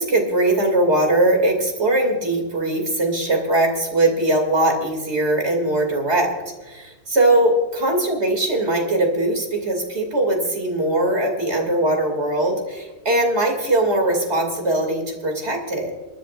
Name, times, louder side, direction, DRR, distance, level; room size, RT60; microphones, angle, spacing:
voice 1, 0.0-6.3 6.7-15.9, right 1 dB, 80° right, 3 dB, 3.0 m, -20 dB
28.5 x 10.5 x 2.5 m, 1.2 s
omnidirectional pair, 1.1 m